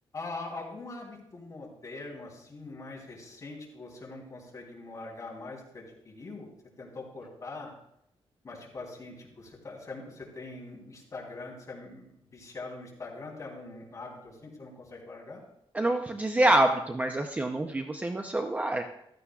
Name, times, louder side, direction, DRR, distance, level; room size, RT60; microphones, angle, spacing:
voice 1, 0.1-6.5 6.8-7.7 8.4-15.4, left 3 dB, 35° left, -3 dB, 3.3 m, -43 dB
voice 2, 15.7-18.8, right 1 dB, 15° right, 4 dB, 0.6 m, -26 dB
15.5 x 12.5 x 2.4 m, 0.76 s
wide cardioid pair, 180°, 10 cm